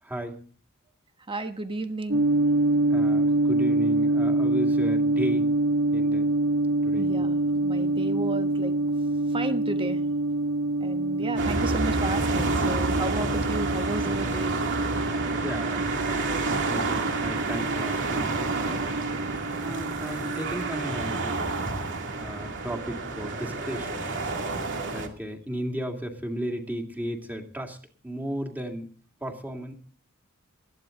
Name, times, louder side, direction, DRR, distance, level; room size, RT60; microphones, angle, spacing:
voice 1, 0.0-0.4 2.9-5.5 5.9-6.3 6.8-7.1 11.2-11.4 15.4-18.4 19.6-21.4 22.2-24.2 24.9-27.8 28.0-28.9 29.2-29.7, equal, 10° right, 3 dB, 2.5 m, -35 dB
voice 2, 1.3-2.3 6.9-8.8 9.3-10.0 10.8-14.6, right 2 dB, 25° right, 8 dB, 1.2 m, -33 dB
sound 1, 2.1-21.6, right 2 dB, 80° right, 2.4 m, -26 dB
sound 2, 11.4-25.1, right 3 dB, 60° right, 2.5 m, -29 dB
20.0 x 14.5 x 3.9 m, 0.43 s
head